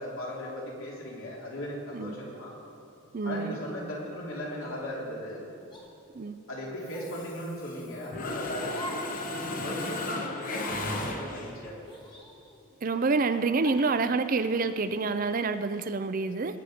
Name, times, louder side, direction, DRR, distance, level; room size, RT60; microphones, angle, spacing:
voice 1, 0.0-2.5 3.2-5.4 6.5-9.0 9.5-12.0, equal, 70° left, -4 dB, 3.3 m, -38 dB
voice 2, 3.1-3.6 6.1-6.5 12.8-16.6, right 4 dB, 40° right, 11 dB, 0.4 m, -28 dB
sound 1, 4.6-5.0 5.7-5.9 6.9-7.3 8.7-9.2 9.5-9.6 10.5-10.9 11.8-12.7 13.6-14.0, left 1 dB, 20° left, 1.7 m, -45 dB
Mechanisms, 6.9-7.8 8.1-11.7, left 2 dB, 40° left, 1.0 m, -34 dB
20.5 x 9.0 x 5.1 m, 2.7 s
head